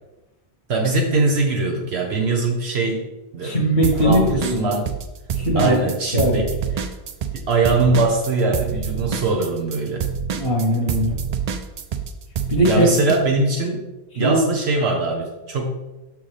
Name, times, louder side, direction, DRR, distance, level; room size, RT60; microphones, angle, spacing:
voice 1, 0.7-3.1 3.3-3.6 4.0-4.9 5.6-6.5 7.3-10.1 12.7-13.9 14.1-15.7, right 3 dB, 75° right, 1 dB, 1.1 m, -21 dB
voice 2, 3.4-4.7 5.3-5.9 6.1-6.4 10.3-11.2 12.5-12.9 14.1-14.5, equal, 70° left, -4 dB, 1.5 m, -20 dB
sound 1, 3.8-5.0 5.3-13.2, right 7 dB, 55° right, 0.5 m, -26 dB
6.4 x 6.3 x 3.3 m, 1.0 s
omnidirectional pair, 1.1 m